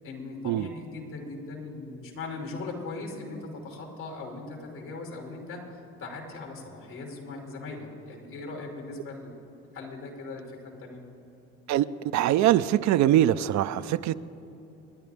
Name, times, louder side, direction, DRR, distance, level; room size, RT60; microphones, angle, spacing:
voice 1, 0.0-9.3 9.7-11.0, left 3 dB, 75° left, 0 dB, 3.1 m, -39 dB
voice 2, 11.7-14.1, right 12 dB, 60° right, 13 dB, 0.5 m, -23 dB
29.0 x 10.5 x 3.5 m, 2.9 s
supercardioid pair, 65°, 32 cm